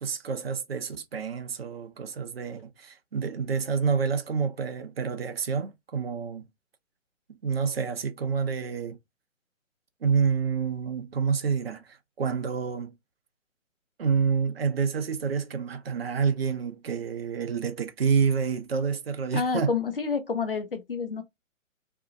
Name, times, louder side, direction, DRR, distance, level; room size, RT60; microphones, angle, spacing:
voice 1, 0.0-6.5 7.4-9.0 10.0-12.9 14.0-19.7, right 6 dB, 50° right, 0.5 m, -28 dB
voice 2, 19.3-21.2, left 5 dB, 45° left, 0.5 m, -29 dB
2.6 x 2.0 x 2.4 m
figure-of-eight pair, 140°, 41 cm